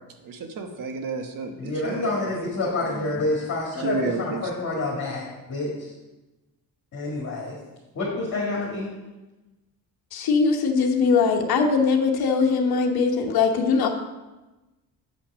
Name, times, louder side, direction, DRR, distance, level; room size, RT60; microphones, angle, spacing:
voice 1, 0.2-2.3 2.8-3.5 3.8-4.5, right 4 dB, 65° right, 5 dB, 1.2 m, -32 dB
voice 2, 1.6-5.9 6.9-7.6 8.0-8.9, left 2 dB, 50° left, -5 dB, 2.1 m, -28 dB
voice 3, 10.1-13.9, left 5 dB, 80° left, 3 dB, 1.2 m, -21 dB
7.9 x 5.9 x 6.1 m, 1.1 s
cardioid pair, 150°, 37 cm